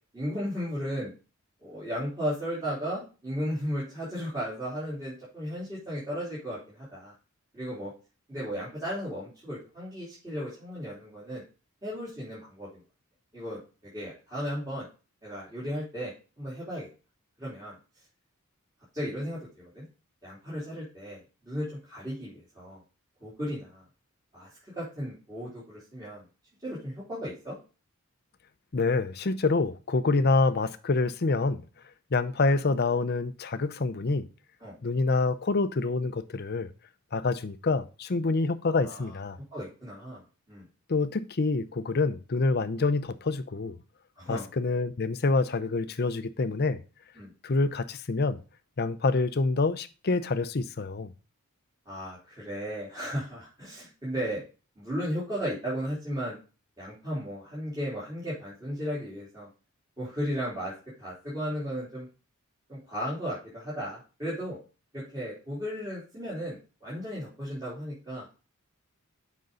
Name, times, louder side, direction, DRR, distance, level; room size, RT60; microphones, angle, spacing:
voice 1, 0.1-1.1 1.6-7.1 7.5-7.9 8.3-11.4 11.8-12.8 13.3-13.6 13.9-14.9 15.2-16.9 17.4-17.7 18.9-19.8 20.2-22.8 23.2-23.8 24.3-26.2 26.6-27.6 30.1-30.2 34.6-34.7 38.8-39.1 39.5-40.2 40.5-40.6 44.2-44.5 47.2-47.3 51.9-54.4 54.8-56.4 56.8-59.5 60.0-62.1 62.7-64.6 64.9-68.3, equal, 20° right, 3.4 m, -35 dB
voice 2, 28.7-31.6 32.1-34.3 34.8-36.7 37.1-39.4 40.9-43.8 44.3-46.8 47.4-48.4 48.8-51.1, left 3 dB, 45° left, 0.6 m, -27 dB
7.9 x 5.3 x 3.8 m
head